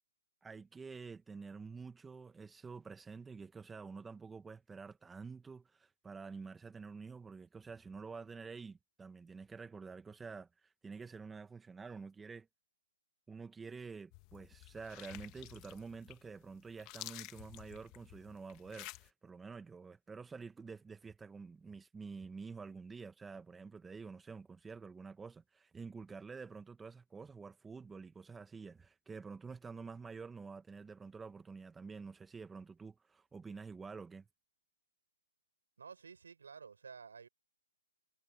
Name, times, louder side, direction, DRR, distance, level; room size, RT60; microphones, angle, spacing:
voice 1, 0.4-12.5 13.3-34.2, right 5 dB, 10° right, 1.2 m, -49 dB
sound 1, 14.1-19.1, left 23 dB, 25° left, 1.9 m, -52 dB
voice 2, 35.8-37.3, right 5 dB, 75° right, 6.4 m, -52 dB
hypercardioid pair, 150°, 0 cm